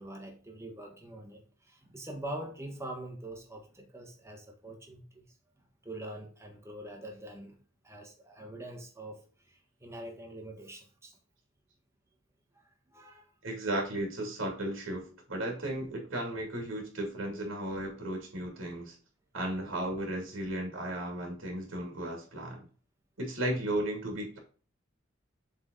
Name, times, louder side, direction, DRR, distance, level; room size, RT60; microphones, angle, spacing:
voice 1, 0.0-5.3 5.8-7.6 7.8-11.2 12.5-13.4, right 1 dB, 15° right, 1.4 m, -44 dB
voice 2, 13.4-19.0 19.3-22.6 23.2-24.4, right 1 dB, 80° right, 2.6 m, -35 dB
7.6 x 4.0 x 3.9 m
head